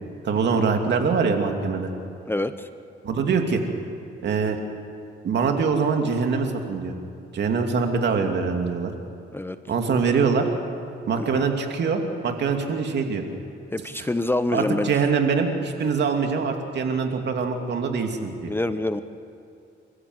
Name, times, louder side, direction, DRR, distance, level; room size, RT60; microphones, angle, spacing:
voice 1, 0.2-1.9 3.0-3.6 4.2-4.6 5.2-6.9 7.3-8.9 9.7-10.5 11.1-13.2 14.0-14.1 14.5-18.5, right 5 dB, 60° right, 4 dB, 2.8 m, -23 dB
voice 2, 2.3-2.7 9.3-9.6 11.2-11.5 13.7-14.9 18.5-19.0, left 2 dB, 10° left, 11 dB, 0.8 m, -26 dB
29.0 x 14.5 x 8.1 m, 2.5 s
cardioid pair, 90°, 20 cm